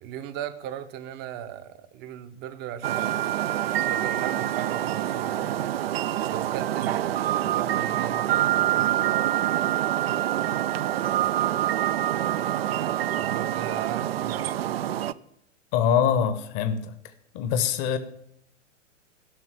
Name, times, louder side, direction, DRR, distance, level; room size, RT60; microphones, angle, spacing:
voice 1, 0.0-3.2 3.9-5.7 6.3-9.1 13.2-14.8, right 10 dB, 30° right, 0.8 m, -38 dB
sound 1, 2.8-15.1, right 12 dB, 55° right, 0.5 m, -26 dB
voice 2, 15.7-16.9 17.3-18.0, left 8 dB, 30° left, 0.9 m, -23 dB
13.0 x 6.1 x 8.9 m
figure-of-eight pair, 100°, 37 cm